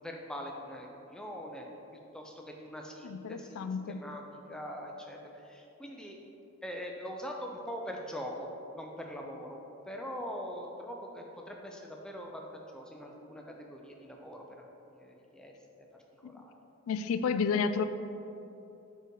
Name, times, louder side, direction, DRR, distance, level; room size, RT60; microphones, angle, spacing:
voice 1, 0.0-1.6 2.1-4.2 4.5-5.2 5.5-6.2 6.6-8.5 8.7-9.6 9.9-12.5 12.7-13.4 13.7-14.4 14.9-15.5 16.2-16.5, equal, 5° left, 0 dB, 0.4 m, -42 dB
voice 2, 3.0-4.0 16.2-16.4 16.9-17.8, left 5 dB, 70° left, 10 dB, 0.3 m, -31 dB
5.0 x 4.6 x 4.7 m, 2.9 s
head